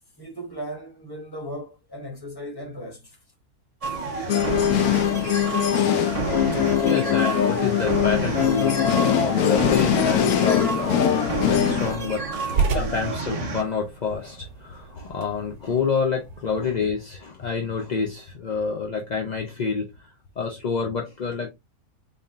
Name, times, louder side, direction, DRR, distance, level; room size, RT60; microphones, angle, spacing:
voice 1, 0.2-3.2 6.5-6.6 12.5-12.8, equal, 15° left, 1.0 m, -37 dB
sound 1, 3.8-13.6, right 4 dB, 30° right, 0.7 m, -30 dB
sound 2, 4.3-11.9, left 10 dB, 80° left, 1.1 m, -22 dB
voice 2, 6.6-20.1 20.4-21.5, left 5 dB, 50° left, 0.5 m, -28 dB
sound 3, 10.5-16.7, right 5 dB, 85° right, 1.3 m, -33 dB
4.0 x 3.5 x 2.4 m
omnidirectional pair, 1.6 m